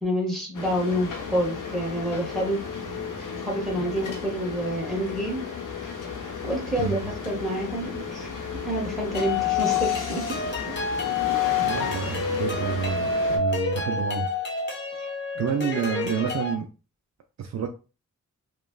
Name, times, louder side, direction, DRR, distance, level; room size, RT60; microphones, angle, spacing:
voice 1, 0.0-2.6 3.4-5.4 6.4-8.3 8.6-10.3, equal, ahead, -3 dB, 1.6 m, -28 dB
sound 1, 0.5-13.4, left 5 dB, 75° left, 0.8 m, -34 dB
voice 2, 6.8-7.1 11.6-14.3 15.4-16.7 17.4-17.7, right 7 dB, 60° right, 5 dB, 0.4 m, -29 dB
sound 2, 9.1-16.5, left 5 dB, 35° left, 1.0 m, -28 dB
3.0 x 2.3 x 2.3 m, 0.33 s
cardioid pair, 60°, 31 cm